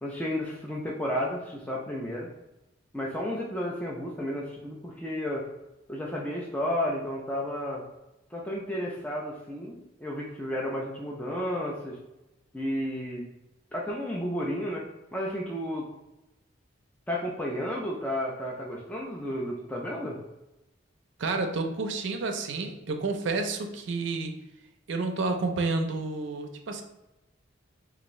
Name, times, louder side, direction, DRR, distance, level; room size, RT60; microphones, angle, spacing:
voice 1, 0.0-2.3 2.9-5.5 5.9-7.8 8.3-12.0 12.5-13.3 13.7-14.8 15.1-15.9 17.1-20.2, equal, 5° left, -3 dB, 0.3 m, -32 dB
voice 2, 21.2-24.3 24.9-26.8, right 3 dB, 60° right, 5 dB, 0.5 m, -30 dB
3.5 x 2.5 x 3.0 m, 0.95 s
head